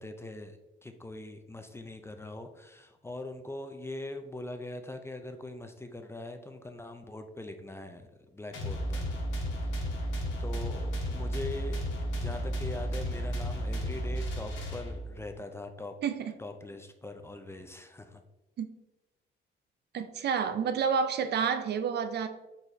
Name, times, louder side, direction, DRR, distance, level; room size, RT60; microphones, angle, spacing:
voice 1, 0.0-9.2 10.4-11.9 12.1-16.0 16.4-18.2, left 2 dB, 15° left, 0.4 m, -42 dB
sound 1, 8.5-15.2, equal, 75° left, 1.2 m, -33 dB
voice 2, 16.0-16.3 18.6-18.7 19.9-22.3, right 6 dB, 55° right, 0.4 m, -29 dB
4.6 x 4.0 x 2.7 m
cardioid pair, 90°, 20 cm